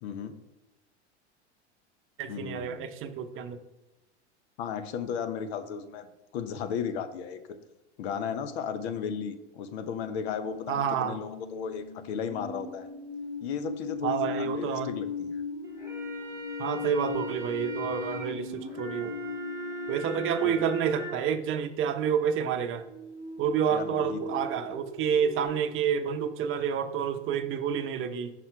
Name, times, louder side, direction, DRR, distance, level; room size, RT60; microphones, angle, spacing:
voice 1, 0.0-0.3 2.3-2.8 4.6-6.1 6.3-7.6 8.0-12.9 13.4-15.4 20.4-20.6 23.7-24.4, left 7 dB, 65° left, 10 dB, 0.8 m, -35 dB
voice 2, 2.2-3.6 10.7-11.2 14.0-14.9 16.6-19.2 19.9-22.8 23.4-28.3, right 8 dB, 35° right, 9 dB, 0.7 m, -29 dB
sound 1, 9.9-21.0 22.7-25.5, left 3 dB, 80° left, 1.8 m, -38 dB
sound 2, 15.6-21.2, right 1 dB, 10° right, 1.8 m, -40 dB
5.7 x 4.2 x 4.6 m, 1.0 s
hypercardioid pair, 95°, 35 cm